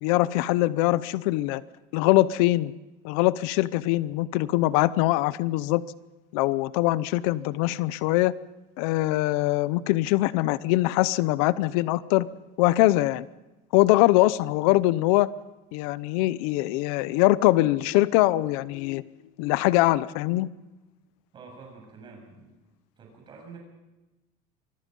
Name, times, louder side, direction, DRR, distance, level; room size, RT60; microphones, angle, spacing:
voice 1, 0.0-1.6 1.9-2.7 3.0-5.8 6.3-8.3 8.8-12.3 12.6-13.2 13.7-15.3 15.7-19.0 19.4-20.5, left 17 dB, 90° left, 17 dB, 0.8 m, -22 dB
voice 2, 21.3-22.6 23.0-23.6, right 4 dB, 25° right, 1 dB, 7.4 m, -47 dB
25.5 x 22.0 x 5.4 m, 1.0 s
cardioid pair, 170°, 18 cm